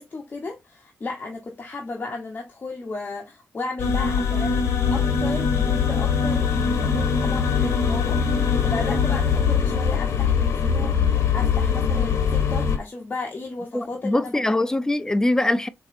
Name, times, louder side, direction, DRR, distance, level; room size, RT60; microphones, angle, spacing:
voice 1, 0.0-4.6 4.9-14.4, left 3 dB, 40° left, 0.8 m, -34 dB
sound 1, 3.8-12.8, left 6 dB, 80° left, 0.8 m, -22 dB
voice 2, 13.7-15.7, left 1 dB, 10° left, 0.4 m, -22 dB
4.1 x 2.7 x 2.4 m
cardioid pair, 70°, 5 cm